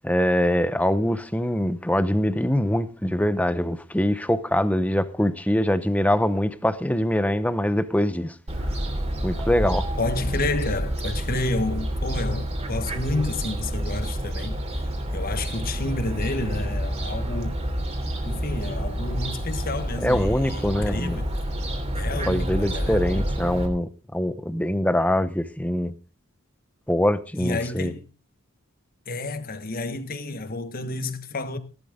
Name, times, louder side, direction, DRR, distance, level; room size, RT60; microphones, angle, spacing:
voice 1, 0.0-8.3 9.2-9.9 20.0-21.2 22.3-25.9 26.9-27.9, left 1 dB, 5° left, 0.8 m, -23 dB
Fowl, 8.5-23.7, equal, 30° right, 3.2 m, -28 dB
voice 2, 10.0-14.6 15.1-17.6 18.2-21.3 21.9-23.2 27.4-28.0 29.1-31.6, left 2 dB, 40° left, 1.3 m, -30 dB
17.5 x 12.0 x 3.7 m
head